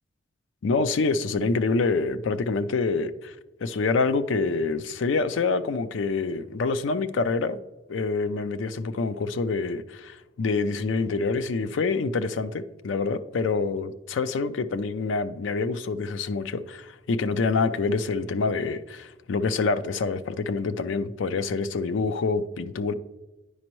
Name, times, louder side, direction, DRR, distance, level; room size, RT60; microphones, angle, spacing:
voice 1, 0.6-3.4 3.6-7.6 7.9-22.9, left 4 dB, 85° left, 0.4 m, -26 dB
9.7 x 5.2 x 3.0 m
head